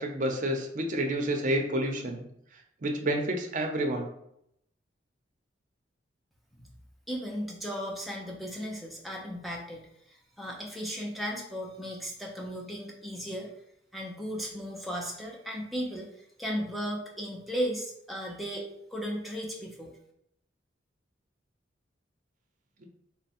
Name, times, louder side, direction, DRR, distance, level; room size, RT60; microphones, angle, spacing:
voice 1, 0.0-2.2 2.8-4.1, right 1 dB, 45° right, 3 dB, 0.6 m, -29 dB
voice 2, 7.1-13.5 13.9-18.6 18.9-19.9, equal, ahead, -2 dB, 0.6 m, -36 dB
3.3 x 2.1 x 4.1 m, 0.75 s
head